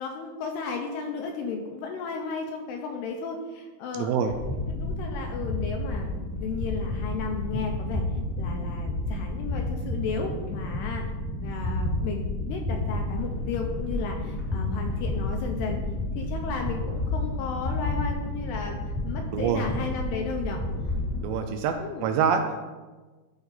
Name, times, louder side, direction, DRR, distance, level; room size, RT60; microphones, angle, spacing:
voice 1, 0.0-4.1 4.7-6.1 6.4-8.1 8.4-11.1 11.4-15.8 16.2-18.8 19.0-20.6 21.8-22.1, left 5 dB, 80° left, 2 dB, 2.5 m, -34 dB
voice 2, 3.9-4.3 19.3-19.7 21.2-22.6, right 7 dB, 80° right, 6 dB, 2.7 m, -26 dB
sound 1, 4.3-21.2, left 2 dB, 60° left, 0.6 m, -30 dB
14.0 x 4.9 x 4.0 m, 1.3 s
omnidirectional pair, 5.4 m